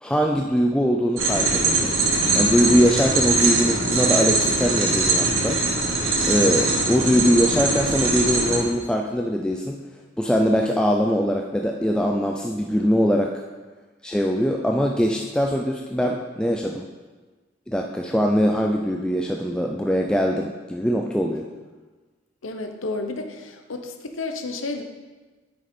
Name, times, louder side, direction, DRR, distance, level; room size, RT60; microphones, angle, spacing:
voice 1, 0.0-1.9 2.4-5.6 6.3-9.8 10.2-13.3 14.0-16.8 17.7-21.4, equal, 5° left, 1 dB, 0.4 m, -22 dB
sound 1, 1.2-8.6, right 3 dB, 85° right, 1.6 m, -22 dB
voice 2, 22.4-24.8, left 3 dB, 90° left, 6 dB, 0.9 m, -31 dB
8.9 x 6.3 x 4.3 m, 1.3 s
head